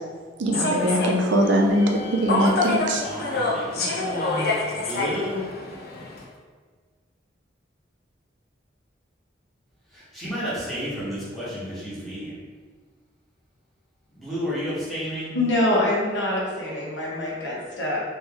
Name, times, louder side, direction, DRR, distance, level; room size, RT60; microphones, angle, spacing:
voice 1, 0.4-3.0, right 1 dB, 80° right, 2 dB, 0.5 m, -21 dB
Human voice / Subway metro underground, 0.5-6.2, left 3 dB, 55° left, 0.6 m, -27 dB
voice 2, 3.0-5.4 9.9-12.3 14.1-15.3, equal, ahead, -11 dB, 1.4 m, -31 dB
voice 3, 15.3-18.0, left 1 dB, 80° left, -4 dB, 1.1 m, -24 dB
3.1 x 3.1 x 3.5 m, 1.5 s
head